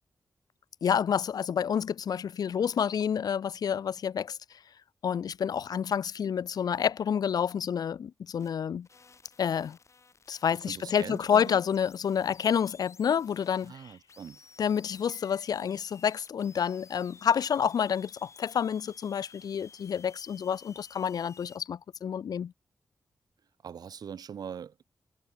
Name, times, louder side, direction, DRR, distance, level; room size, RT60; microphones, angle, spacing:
voice 1, 0.8-4.4 5.0-8.9 9.4-9.8 10.3-13.9 14.6-22.5, left 8 dB, 80° left, 0.8 m, -29 dB
sound 1, 8.4-8.5 8.8-21.6, left 4 dB, 50° left, 3.1 m, -56 dB
voice 2, 10.5-11.6 13.5-14.4 23.6-24.8, right 7 dB, 80° right, 2.7 m, -42 dB
cardioid pair, 80°, 7 cm